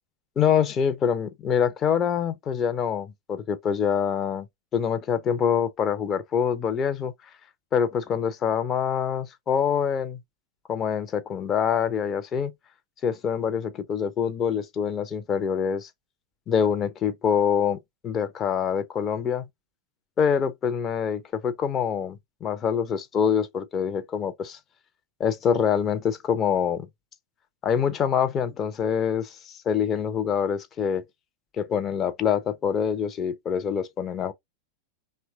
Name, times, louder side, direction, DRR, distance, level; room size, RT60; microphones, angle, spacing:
voice 1, 0.4-4.5 4.7-7.1 7.7-10.2 10.7-12.5 13.0-15.9 16.5-19.5 20.2-24.6 25.2-26.9 27.6-31.0 31.6-34.3, left 7 dB, 30° left, 0.5 m, -25 dB
2.9 x 2.2 x 2.6 m
figure-of-eight pair, 90°, 0 cm